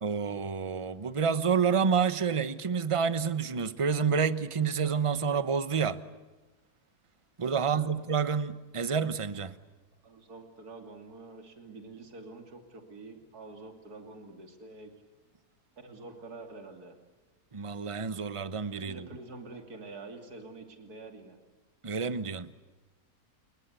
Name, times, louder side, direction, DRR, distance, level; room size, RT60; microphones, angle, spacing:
voice 1, 0.0-6.0 7.4-9.5 17.5-19.1 21.8-22.5, right 6 dB, 25° right, 0.9 m, -29 dB
voice 2, 7.5-7.9 10.0-14.9 15.8-16.9 18.7-21.4, right 3 dB, 65° right, 3.3 m, -47 dB
30.0 x 21.0 x 8.2 m
omnidirectional pair, 1.7 m